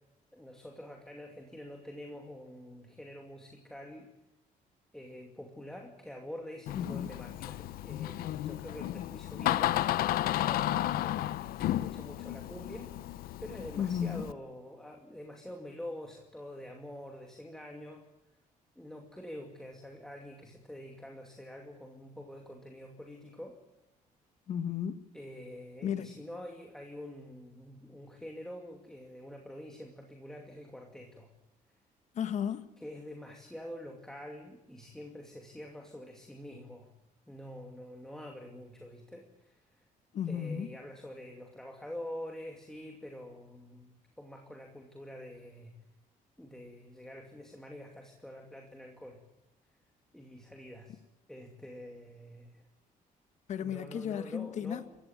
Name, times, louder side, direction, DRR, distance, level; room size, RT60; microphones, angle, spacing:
voice 1, 0.3-4.1 4.9-9.8 10.2-12.9 13.4-18.0 18.8-23.5 25.1-31.3 32.8-36.9 37.3-39.9 40.3-45.8 46.4-49.2 50.1-51.0 51.3-52.7 53.6-55.0, left 1 dB, 5° left, 2.4 m, -46 dB
Door, 6.7-14.3, left 14 dB, 90° left, 0.8 m, -33 dB
voice 2, 6.7-7.2 13.8-14.2 24.5-25.0 25.8-26.2 32.1-32.7 40.1-40.7 53.5-54.8, left 8 dB, 55° left, 1.7 m, -34 dB
27.5 x 15.5 x 9.3 m
cardioid pair, 170°, 15 cm